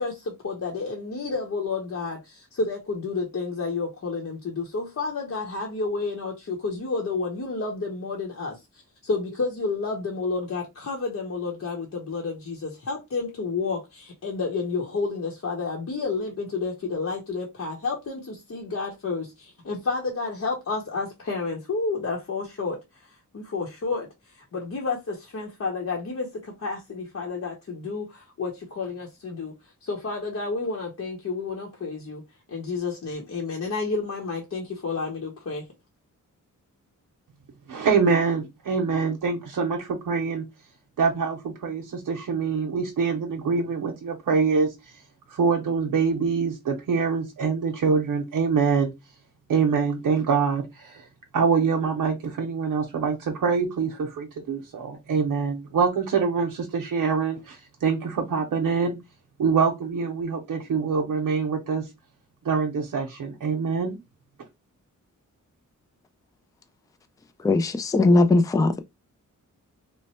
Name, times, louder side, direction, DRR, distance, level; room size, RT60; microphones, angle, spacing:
voice 1, 0.0-8.6 9.0-32.2 32.5-35.7, left 4 dB, 55° left, 0.9 m, -30 dB
voice 2, 37.7-40.5 41.0-44.7 45.3-48.9 49.5-51.0 51.3-59.0 59.4-61.9 62.4-64.0, right 5 dB, 90° right, 0.7 m, -25 dB
voice 3, 67.4-68.8, left 2 dB, 10° left, 0.3 m, -19 dB
3.1 x 2.1 x 4.2 m
wide cardioid pair, 120°, 32 cm